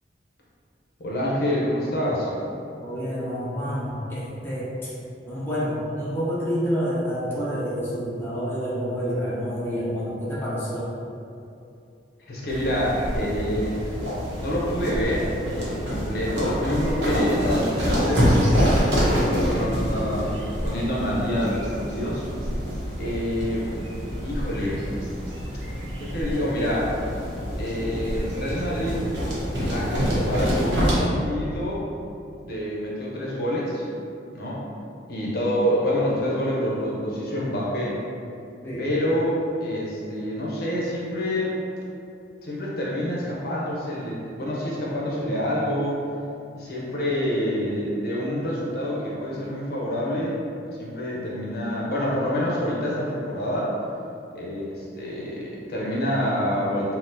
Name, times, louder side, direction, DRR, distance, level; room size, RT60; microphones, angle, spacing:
voice 1, 1.0-2.3 12.3-13.8 14.4-20.2 20.6-22.2 23.0-23.7 24.2-24.9 26.0-26.9 27.5-29.1 29.7-31.8 32.4-33.8 34.3-34.6 35.1-38.0 38.8-39.3 39.6-41.6 42.4-46.0 46.6-50.4 50.8-53.7 54.3-57.0, equal, 55° left, -5 dB, 0.6 m, -27 dB
voice 2, 2.8-4.9 5.2-10.9 38.6-38.9, equal, 15° left, -9 dB, 0.6 m, -28 dB
sound 1, 12.5-31.1, equal, 85° right, 0.8 m, -26 dB
4.1 x 2.1 x 2.6 m, 2.6 s
head